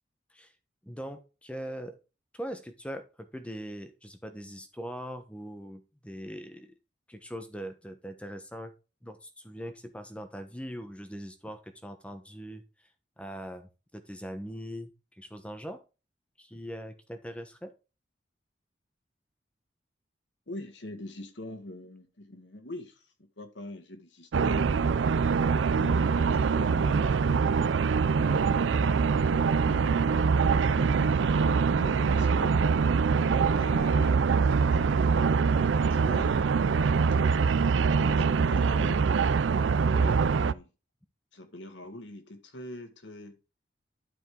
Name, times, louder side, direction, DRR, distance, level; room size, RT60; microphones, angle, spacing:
voice 1, 0.8-2.0 2.3-6.7 7.1-8.7 9.0-12.6 13.2-14.9 15.2-15.8 16.4-17.7 28.2-28.4 39.9-40.2, equal, 5° left, 1.1 m, -41 dB
voice 2, 20.5-25.1 25.7-27.5 28.3-32.6 33.5-34.2 34.6-36.4 38.0-39.1 39.9-40.7 41.3-43.4, left 1 dB, 80° left, 1.8 m, -43 dB
sound 1, 24.3-40.5, right 5 dB, 85° right, 0.4 m, -24 dB
11.5 x 5.1 x 3.8 m
head